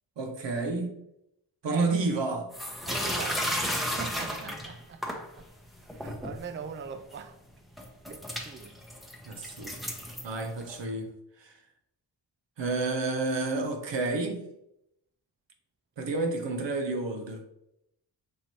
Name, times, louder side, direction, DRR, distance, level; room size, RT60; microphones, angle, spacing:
voice 1, 0.2-1.0 1.6-2.5 9.2-9.8 10.2-11.1 11.4-11.6 12.6-14.5 16.0-17.4, right 3 dB, 70° right, 0.9 m, -30 dB
sound 1, 2.5-5.3 5.8-6.4 7.1-7.2 7.8-10.8, equal, ahead, 0.8 m, -33 dB
voice 2, 2.9-3.5 4.0-5.5 6.0-7.4 8.1-8.7, right 6 dB, 30° right, 0.4 m, -41 dB
6.0 x 2.6 x 3.0 m
cardioid pair, 45°, 45 cm